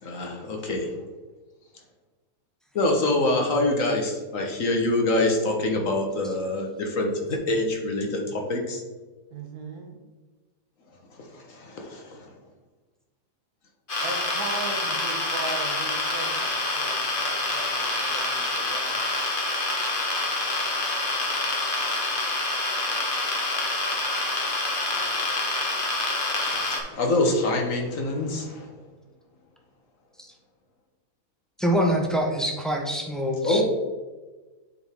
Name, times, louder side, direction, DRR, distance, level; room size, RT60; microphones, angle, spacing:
voice 1, 0.0-0.9 2.7-8.8 11.2-12.3 24.9-25.0 26.4-28.7 33.4-33.6, left 2 dB, 60° left, 2 dB, 1.4 m, -25 dB
voice 2, 9.3-10.0 14.0-19.1, right 3 dB, 75° right, 3 dB, 1.6 m, -38 dB
sound 1, 13.9-26.8, left 2 dB, 35° left, 1.2 m, -27 dB
voice 3, 31.6-33.6, equal, ahead, 0 dB, 0.8 m, -25 dB
9.1 x 4.7 x 3.5 m, 1.3 s
omnidirectional pair, 1.6 m